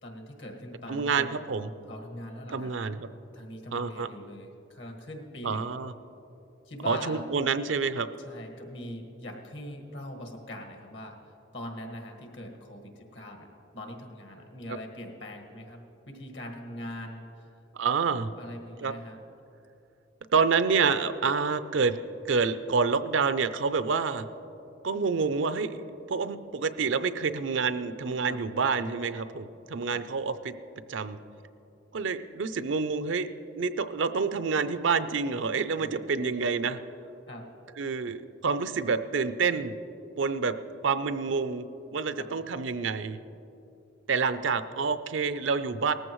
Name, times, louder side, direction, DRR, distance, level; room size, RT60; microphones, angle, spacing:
voice 1, 0.0-1.4 1.9-2.7 3.3-5.7 6.6-7.3 8.2-13.5 13.7-17.5 18.4-19.2 28.3-28.4 29.9-30.0 35.8-36.1 37.3-37.5 41.2-41.3 42.2-42.5, left 1 dB, 65° left, 3 dB, 1.7 m, -42 dB
voice 2, 0.9-1.7 2.5-3.1 3.7-4.1 5.4-5.9 6.8-8.1 17.7-18.3 18.8-18.9 20.3-22.0 22.3-24.3 24.8-25.8 26.1-30.5 30.9-31.2 31.9-33.3 33.6-36.8 37.8-39.7 40.2-40.6 40.8-41.6 41.9-43.2 44.1-45.9, right 5 dB, 70° right, 12 dB, 0.5 m, -28 dB
18.5 x 14.5 x 3.1 m, 2.8 s
head